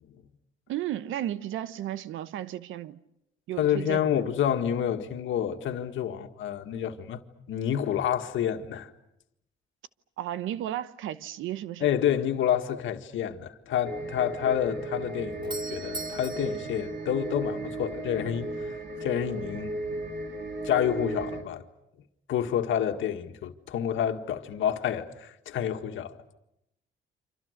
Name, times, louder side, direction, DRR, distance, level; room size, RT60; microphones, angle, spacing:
voice 1, 0.7-3.0 3.5-4.2 10.2-11.9, right 12 dB, 85° right, 1.0 m, -34 dB
voice 2, 3.6-7.2 7.5-8.9 11.8-20.0 20.6-21.6 22.3-26.2, left 9 dB, 75° left, 1.9 m, -29 dB
sound 1, 13.8-21.4, right 1 dB, 65° right, 4.3 m, -35 dB
Doorbell, 15.1-17.9, right 3 dB, 25° right, 2.9 m, -42 dB
29.0 x 26.0 x 6.7 m
cardioid pair, 90°, 20 cm